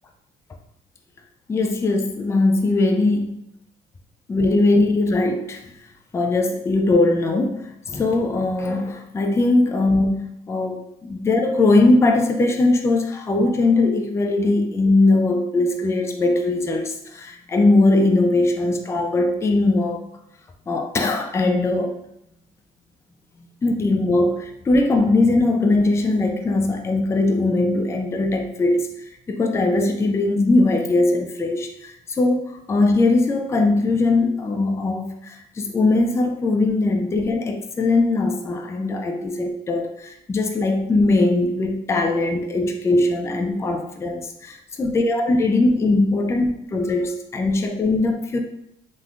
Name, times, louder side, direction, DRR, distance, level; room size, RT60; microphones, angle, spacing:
voice 1, 1.5-3.5 4.3-5.6 6.1-20.0 20.7-21.9 23.6-28.9 29.3-48.4, left 2 dB, 15° left, 4 dB, 0.3 m, -20 dB
3.4 x 2.5 x 2.3 m, 0.80 s
cardioid pair, 110°, 17 cm